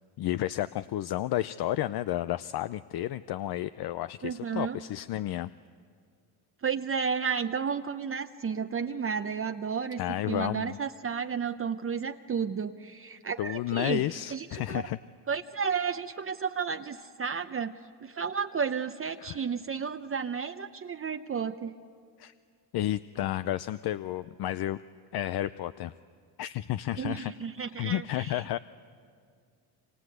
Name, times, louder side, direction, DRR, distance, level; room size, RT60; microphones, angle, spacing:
voice 1, 0.2-5.5 10.0-10.8 13.4-15.0 19.2-19.4 22.2-22.3 22.7-24.8 25.1-25.9 26.4-27.3 27.8-28.6, left 13 dB, 55° left, 14 dB, 0.6 m, -31 dB
voice 2, 4.2-4.8 6.6-10.0 10.3-14.0 14.3-14.8 15.3-21.7 27.0-28.4, right 6 dB, 30° right, 7 dB, 0.8 m, -32 dB
28.5 x 24.5 x 8.0 m, 2.1 s
supercardioid pair, 85°, 45 cm